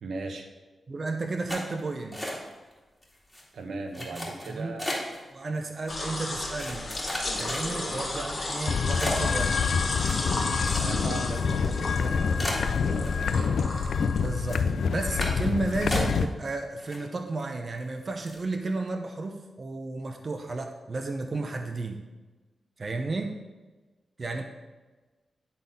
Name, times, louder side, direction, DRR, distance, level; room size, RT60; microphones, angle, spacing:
voice 1, 0.0-0.5 3.5-4.9 5.5-5.6 7.8-8.0 10.7-13.5, right 3 dB, 80° right, 5 dB, 0.9 m, -39 dB
voice 2, 0.9-2.4 4.1-4.7 5.3-6.9 7.4-9.6 14.2-22.0 22.8-23.3 24.2-24.4, right 3 dB, 50° right, 4 dB, 0.7 m, -33 dB
sound 1, 1.5-2.7 3.0-3.4 3.9-5.2 5.9-6.0 6.6-8.0 8.5-8.6 9.0-11.2 11.5-11.6 11.9-12.0 12.4-13.4 13.8-14.2 14.5-14.7 15.2-15.5 15.9-16.5 16.8-17.4 17.8-17.9 18.2-18.5, equal, ahead, 2.5 m, -35 dB
sound 2, 5.9-15.8, left 2 dB, 40° left, 1.9 m, -34 dB
sound 3, 8.7-16.3, left 6 dB, 80° left, 0.4 m, -27 dB
10.0 x 4.1 x 5.4 m, 1.3 s
cardioid pair, 70°, 0 cm